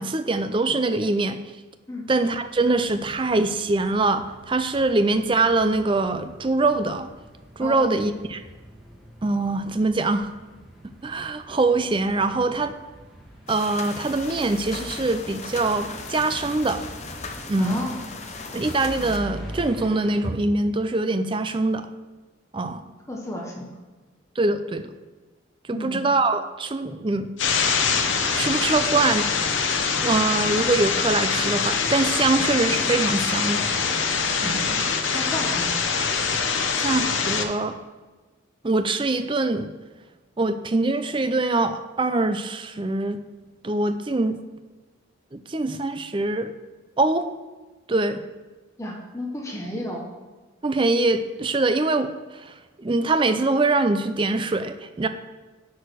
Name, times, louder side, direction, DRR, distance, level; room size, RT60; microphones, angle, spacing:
voice 1, 0.0-1.4 2.1-7.1 7.6-8.4 9.2-10.3 11.0-12.7 13.5-16.8 17.5-17.8 18.5-21.9 22.5-22.8 24.4-24.9 25.7-27.3 28.3-29.3 30.0-33.7 34.4-34.8 36.8-37.8 38.6-39.7 40.4-43.2 43.6-44.4 45.3-46.5 47.0-47.3 47.9-48.2 50.6-55.1, right 2 dB, 25° right, 10 dB, 0.4 m, -23 dB
sound 1, 2.1-20.3, right 1 dB, ahead, 1.4 m, -43 dB
voice 2, 7.6-7.9 17.6-18.0 23.1-23.7 25.7-26.1 34.4-34.8 35.1-35.7 48.8-50.0, left 1 dB, 15° left, -1 dB, 1.1 m, -32 dB
sound 2, 13.5-19.2, left 4 dB, 35° left, 0.8 m, -37 dB
sound 3, 27.4-37.4, left 5 dB, 75° left, 0.9 m, -24 dB
11.0 x 4.7 x 6.3 m, 1.3 s
head